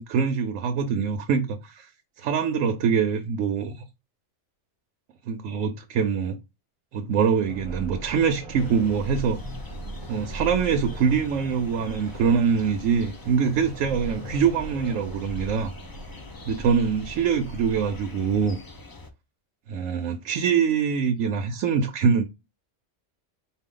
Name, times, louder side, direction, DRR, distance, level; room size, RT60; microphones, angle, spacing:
voice 1, 0.0-1.9 2.2-3.7 5.3-6.3 6.9-9.4 10.1-15.7 16.5-18.6 19.7-22.3, right 6 dB, 80° right, 1.0 m, -24 dB
sound 1, 7.2-18.5, right 1 dB, 25° right, 0.8 m, -39 dB
sound 2, 8.6-19.1, left 2 dB, 30° left, 0.4 m, -44 dB
4.4 x 2.3 x 3.7 m
omnidirectional pair, 1.3 m